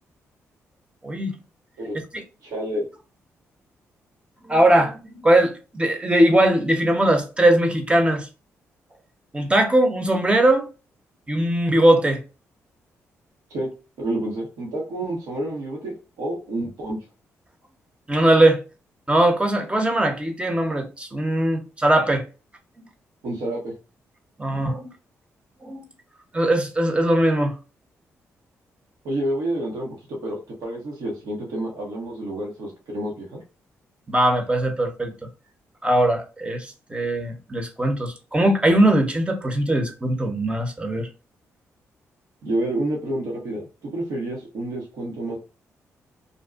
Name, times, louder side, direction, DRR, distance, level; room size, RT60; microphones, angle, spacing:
voice 1, 1.0-1.3 2.1-2.2 4.4-8.3 9.3-10.6 11.3-12.2 18.1-18.6 19.1-22.2 22.8-22.9 24.4-24.9 25.6-25.8 26.3-27.5 34.1-35.1 35.8-41.1, right 1 dB, 20° right, 0.8 m, -20 dB
voice 2, 2.4-2.9 13.5-13.7 14.0-17.0 23.2-23.7 29.0-33.4 42.4-45.4, right 1 dB, 75° right, 0.9 m, -29 dB
2.5 x 2.3 x 2.3 m
supercardioid pair, 50°, 6 cm